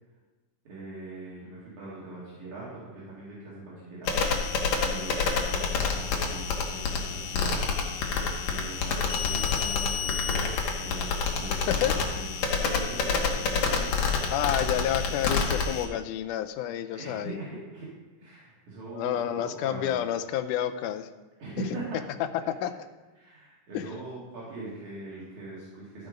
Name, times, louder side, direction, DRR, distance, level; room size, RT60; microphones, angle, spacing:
voice 1, 0.7-7.7 8.1-14.0 14.8-14.9 16.9-17.9 18.2-20.0 21.4-22.0 22.4-22.5 23.2-26.1, right 2 dB, 70° right, -7 dB, 3.4 m, -41 dB
sound 1, 4.1-15.9, left 5 dB, 65° left, 2.3 m, -28 dB
voice 2, 11.5-11.9 14.3-17.4 18.9-21.1 22.6-22.7 23.7-23.9, left 11 dB, 85° left, 8 dB, 2.1 m, -29 dB
13.0 x 5.2 x 5.0 m, 1.2 s
omnidirectional pair, 3.5 m